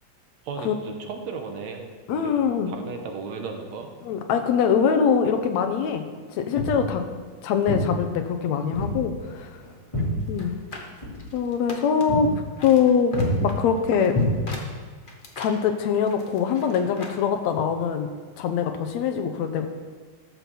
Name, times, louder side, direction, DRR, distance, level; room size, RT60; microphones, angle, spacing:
voice 1, 0.4-2.4 2.7-3.9, right 5 dB, 75° right, 4 dB, 2.2 m, -35 dB
voice 2, 2.1-2.7 4.0-6.0 6.3-7.0 7.4-9.5 10.3-10.5 11.3-12.3 12.6-14.1 15.4-18.1 18.4-19.7, left 7 dB, 75° left, 7 dB, 2.1 m, -23 dB
Walk footsteps, 6.5-6.8 7.6-7.9 8.7-9.0 9.3-10.7 11.0-11.2 11.6-11.8 12.1-12.3 12.6-12.8 13.1-13.4 14.1-14.8, left 1 dB, 10° left, 2.9 m, -27 dB
sound 1, 10.3-12.3 12.6-17.2 17.5-17.6, left 2 dB, 40° left, 0.7 m, -41 dB
13.0 x 5.9 x 7.0 m, 1.5 s
omnidirectional pair, 3.3 m